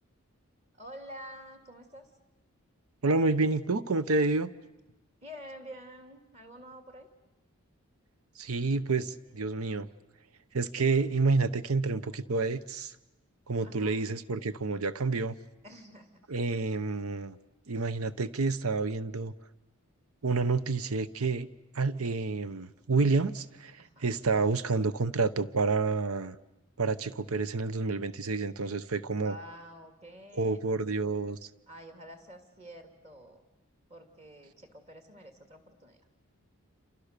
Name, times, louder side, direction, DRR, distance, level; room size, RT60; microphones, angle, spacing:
voice 1, 0.7-2.1 5.2-7.1 13.6-14.0 15.6-16.1 23.8-24.2 29.1-31.1 31.7-33.4 33.9-36.0, equal, 30° right, 6 dB, 2.6 m, -48 dB
voice 2, 3.0-4.5 8.4-9.9 10.5-12.9 13.5-15.4 16.3-17.4 17.7-19.3 20.2-21.5 21.7-26.4 26.8-29.3 30.3-31.5, right 3 dB, 80° right, 14 dB, 0.9 m, -29 dB
28.5 x 27.5 x 6.8 m, 1.0 s
head